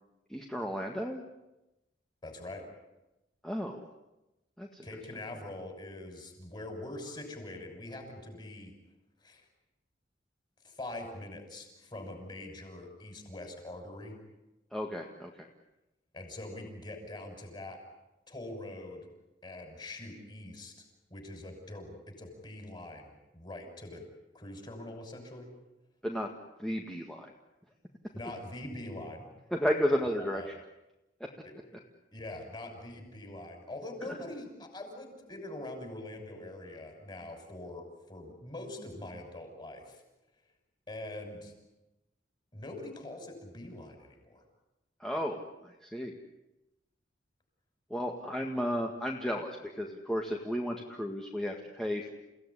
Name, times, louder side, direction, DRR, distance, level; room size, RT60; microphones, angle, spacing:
voice 1, 0.3-1.2 3.4-3.9 4.6-4.8 14.7-15.5 26.0-26.3 26.6-27.3 29.5-30.5 31.2-31.3 34.1-34.2 45.0-46.1 47.9-52.1, equal, 5° left, 0 dB, 1.9 m, -33 dB
voice 2, 2.2-2.6 4.8-8.7 9.2-9.4 10.6-14.2 16.1-17.8 18.3-19.1 19.4-20.7 21.1-24.0 24.3-25.5 28.1-29.2 30.2-30.5 31.4-31.5 32.1-40.0 40.9-41.5 42.5-44.4, left 1 dB, 25° left, 4 dB, 6.4 m, -43 dB
30.0 x 17.5 x 9.9 m, 0.98 s
head